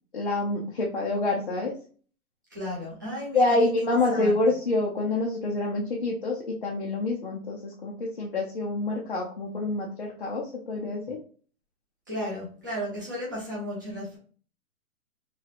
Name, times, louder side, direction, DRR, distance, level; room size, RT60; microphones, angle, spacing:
voice 1, 0.1-1.8 3.3-11.2, left 2 dB, 40° left, -3 dB, 0.4 m, -27 dB
voice 2, 2.5-3.7 4.1-4.4 12.1-14.2, equal, 15° right, -7 dB, 0.5 m, -34 dB
3.0 x 2.9 x 2.4 m, 0.42 s
hypercardioid pair, 170°, 43 cm